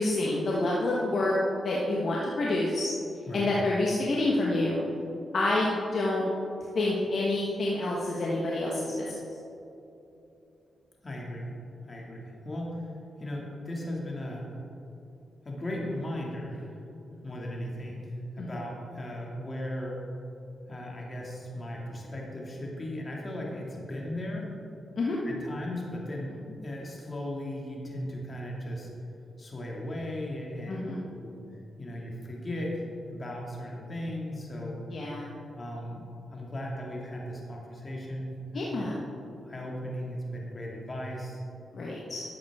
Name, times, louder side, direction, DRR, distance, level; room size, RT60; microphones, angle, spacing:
voice 1, 0.0-2.9 3.3-4.8 5.3-6.3 6.7-8.9 18.4-18.6 25.0-25.2 30.7-31.0 34.9-35.3 38.5-39.0 41.7-42.2, left 2 dB, 60° left, -4 dB, 1.3 m, -28 dB
voice 2, 11.0-11.5 11.8-12.9 13.2-14.4 15.4-16.7 17.2-20.0 20.7-24.5 25.2-26.4 26.6-28.9 29.4-30.8 31.2-31.4 31.8-32.8 33.1-34.8 35.6-36.0 36.3-38.6 39.3-41.4, left 1 dB, 35° left, -3 dB, 2.3 m, -37 dB
11.5 x 7.6 x 3.6 m, 2.9 s
cardioid pair, 60°, 0 cm